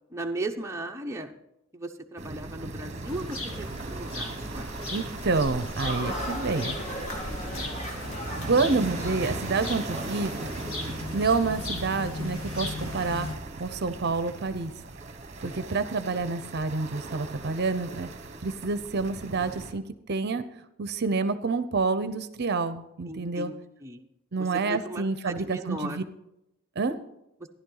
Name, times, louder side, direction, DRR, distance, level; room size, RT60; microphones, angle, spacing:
voice 1, 0.1-1.3 1.7-4.8 7.3-7.7 15.4-15.7 23.0-24.1 24.4-26.0, right 2 dB, 15° right, 2 dB, 0.8 m, -37 dB
sound 1, 2.2-19.7, right 3 dB, 35° right, 1.3 m, -39 dB
sound 2, 3.0-13.4, left 1 dB, 80° left, 2.3 m, -37 dB
voice 2, 4.9-6.8 8.4-10.5 11.1-13.3 13.6-14.7 15.4-18.1 18.4-19.8 20.1-20.4 20.8-23.5 24.3-26.0 26.8-27.0, right 4 dB, 50° right, 12 dB, 0.7 m, -28 dB
sound 3, 5.8-11.4, equal, 35° left, 1.9 m, -38 dB
14.0 x 11.0 x 3.9 m, 0.85 s
head